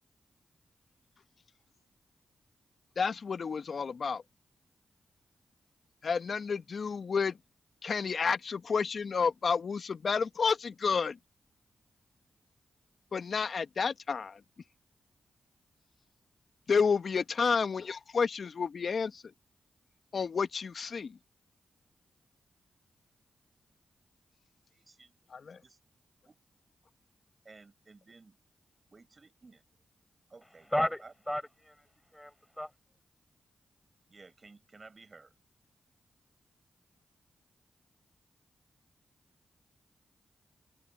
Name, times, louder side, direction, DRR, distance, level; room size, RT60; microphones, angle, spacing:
voice 1, 3.0-4.2 6.0-7.4 7.8-11.2 13.1-14.4 16.7-19.2 20.1-21.2 25.3-25.6, left 5 dB, 65° left, 1.2 m, -30 dB
voice 2, 24.7-25.1 25.6-25.8 26.2-26.3 27.4-28.4 28.9-29.6 30.3-30.7 31.0-31.1 34.1-35.3, right 3 dB, 45° right, 6.8 m, -55 dB
voice 3, 30.7-31.8 32.1-32.7, equal, 5° left, 5.5 m, -33 dB
supercardioid pair, 40°, 0 cm